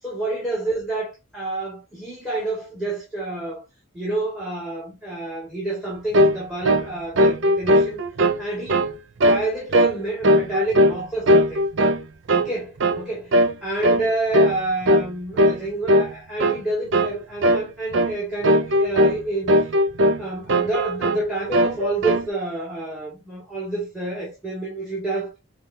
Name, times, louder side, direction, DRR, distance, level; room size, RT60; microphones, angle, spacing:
voice 1, 0.0-3.6 3.9-8.0 8.4-8.8 9.3-11.6 12.3-13.3 13.6-19.7 20.0-25.3, right 2 dB, ahead, 1.7 m, -29 dB
sound 1, 6.1-6.4 6.6-6.9 7.2-8.4 8.7-8.9 9.2-9.5 9.7-10.0 10.2-11.0 11.3-12.0 12.3-12.5 12.8-13.0 13.3-13.5 13.8-14.0 14.3-14.6 14.9-15.1 15.4-15.6 15.9-16.1 16.4-16.6 16.9-17.2 17.4-17.6 17.9-18.1 18.4-19.2 19.5-20.2 20.5-21.2 21.5-22.3, equal, 60° right, 0.5 m, -18 dB
5.3 x 3.2 x 2.6 m
head